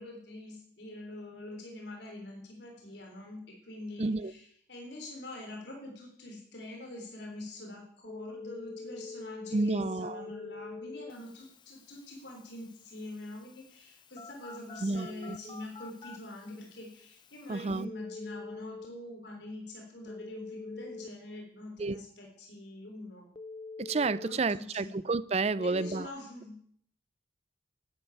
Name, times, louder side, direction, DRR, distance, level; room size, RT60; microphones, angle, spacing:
voice 1, 0.0-23.3 24.2-24.9 25.6-26.6, left 1 dB, 65° left, 1 dB, 3.5 m, -45 dB
voice 2, 4.0-4.3 9.5-10.2 14.8-15.4 17.5-17.9 21.8-22.0 23.8-26.1, right 3 dB, 35° right, 18 dB, 0.5 m, -30 dB
Telephone, 8.0-18.9 20.1-21.1 23.4-24.4 25.6-26.1, left 3 dB, 25° left, 0.6 m, -46 dB
12.5 x 9.1 x 8.5 m, 0.66 s
head